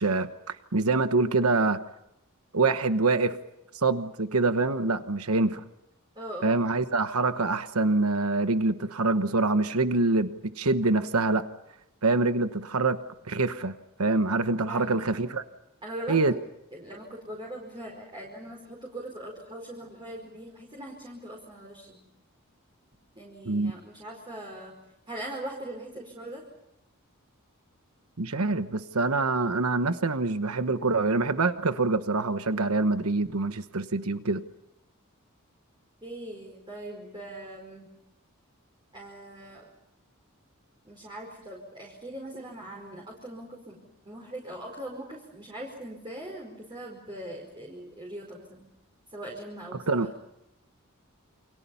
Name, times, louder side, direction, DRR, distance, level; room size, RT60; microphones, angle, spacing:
voice 1, 0.0-1.8 2.5-3.4 3.8-5.6 6.4-11.4 12.0-13.0 13.3-13.7 14.0-15.4 16.1-16.3 23.5-23.7 28.2-34.4 49.9-50.1, right 3 dB, 80° right, 10 dB, 1.2 m, -25 dB
voice 2, 6.2-6.6 14.7-15.3 15.8-16.2 16.7-22.0 23.2-24.7 25.1-26.4 36.0-37.9 38.9-39.7 40.9-43.8 44.1-48.7 49.1-50.1, right 1 dB, 20° right, -2 dB, 5.0 m, -41 dB
29.5 x 26.5 x 5.7 m, 0.84 s
head